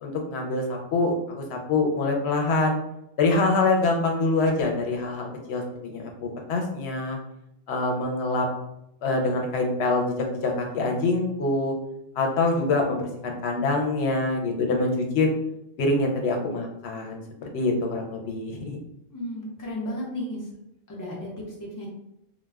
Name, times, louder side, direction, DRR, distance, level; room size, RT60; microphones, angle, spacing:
voice 1, 0.0-2.8 3.2-7.2 7.7-8.5 9.0-10.1 10.4-11.7 12.2-15.3 15.8-17.2 17.5-18.8, left 3 dB, 85° left, 1 dB, 0.8 m, -25 dB
voice 2, 19.1-20.5 20.9-21.9, equal, 20° left, -4 dB, 0.6 m, -34 dB
2.2 x 2.1 x 3.3 m, 0.82 s
omnidirectional pair, 1.1 m